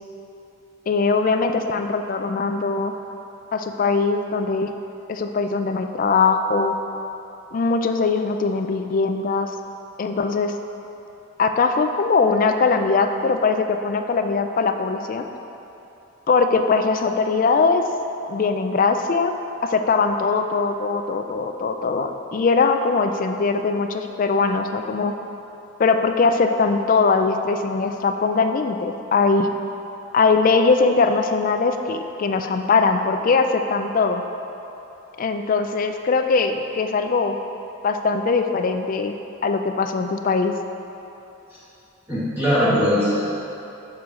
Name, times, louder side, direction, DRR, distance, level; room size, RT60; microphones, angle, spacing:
voice 1, 0.9-3.0 3.5-4.7 5.1-6.8 7.5-9.5 10.0-10.5 11.4-15.2 16.3-17.9 18.3-19.3 19.6-25.1 25.8-29.5 30.1-34.2 35.2-37.4 37.8-39.1 39.4-40.5, left 4 dB, 40° left, 6 dB, 0.3 m, -21 dB
voice 2, 42.1-43.3, equal, 10° right, -12 dB, 1.4 m, -20 dB
6.9 x 4.8 x 3.7 m, 2.9 s
head